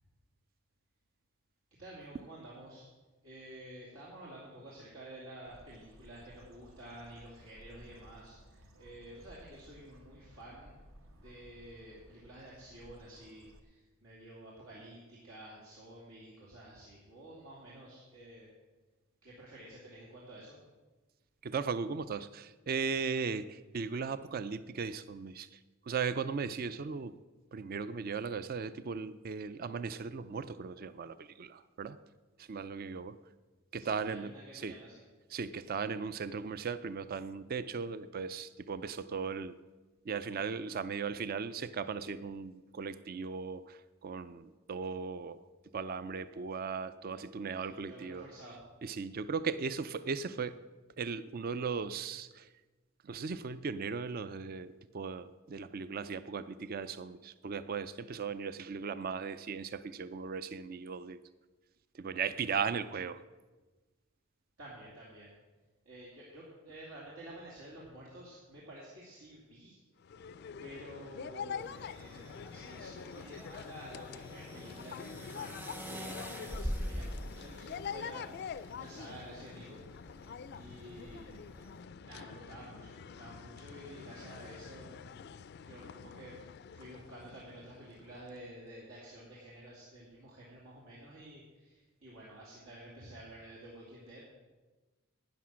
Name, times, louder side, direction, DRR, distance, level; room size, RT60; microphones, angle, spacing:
voice 1, 1.8-2.9 3.2-10.7 11.1-18.5 19.2-20.6 33.7-35.0 47.5-48.6 62.5-62.7 64.6-65.3 65.8-69.8 70.6-79.8 80.1-80.2 80.5-81.5 82.0-84.9 85.6-86.4 86.7-94.3, right 1 dB, 85° right, -5 dB, 2.7 m, -51 dB
Bird, 5.4-13.6, equal, 65° right, 1.1 m, -58 dB
voice 2, 21.4-25.6 25.9-27.2 27.5-32.0 32.4-33.1 33.7-34.7 35.3-39.6 40.1-45.4 45.7-48.2 48.8-50.6 51.0-52.5 53.0-61.2 61.9-63.2, right 5 dB, 45° right, 14 dB, 0.4 m, -37 dB
sound 1, 70.0-88.5, left 6 dB, 50° left, 0.4 m, -46 dB
sound 2, 71.6-81.8, equal, 10° right, 0.7 m, -45 dB
12.0 x 9.5 x 6.2 m, 1.2 s
head